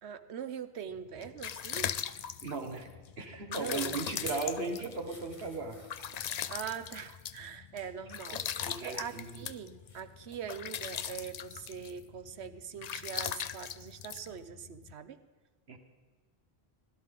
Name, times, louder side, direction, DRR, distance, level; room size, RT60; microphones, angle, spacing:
voice 1, 0.0-1.9 3.5-4.0 6.5-8.4 8.8-15.2, right 7 dB, 90° right, 11 dB, 1.1 m, -42 dB
sound 1, 1.0-14.9, left 8 dB, 55° left, 0.5 m, -40 dB
voice 2, 2.4-2.9 3.2-5.8 8.6-9.3 15.7-15.8, right 3 dB, 70° right, 4 dB, 1.7 m, -37 dB
sound 2, 4.2-6.7 7.4-7.9 8.3-10.0 10.3-10.5 10.9-11.0, left 2 dB, 30° left, 1.3 m, -50 dB
16.5 x 12.5 x 3.7 m, 1.4 s
omnidirectional pair, 1.1 m